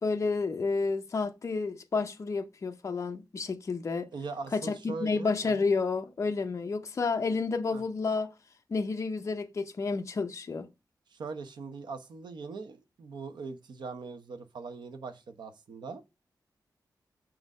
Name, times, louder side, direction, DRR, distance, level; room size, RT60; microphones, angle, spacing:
voice 1, 0.0-4.1 4.5-8.3 8.7-10.7, left 4 dB, 40° left, 0.7 m, -30 dB
voice 2, 4.1-5.7 7.7-7.8 11.1-16.0, right 4 dB, 80° right, 0.9 m, -41 dB
6.0 x 3.9 x 5.3 m
wide cardioid pair, 165°, 8 cm